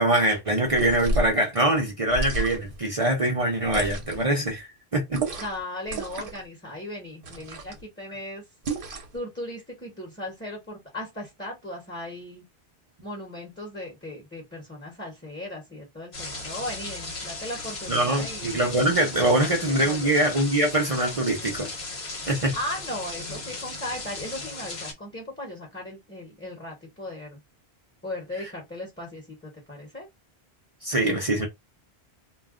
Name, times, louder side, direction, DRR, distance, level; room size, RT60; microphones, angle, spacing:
voice 1, 0.0-5.2 17.9-21.7 22.3-22.6 30.8-31.5, right 1 dB, 35° right, 0.7 m, -23 dB
sound 1, 0.7-1.4 2.1-2.8 3.6-4.3 5.1-5.6 5.9-6.4 7.2-7.8 8.6-9.2, right 2 dB, 60° right, 0.9 m, -31 dB
voice 2, 5.4-8.4 9.1-12.4 13.0-18.6 19.4-20.2 22.5-27.4 28.0-30.1, left 1 dB, 10° left, 0.9 m, -37 dB
sound 2, 16.1-24.9, left 2 dB, 45° left, 1.1 m, -36 dB
2.4 x 2.2 x 3.5 m
omnidirectional pair, 1.1 m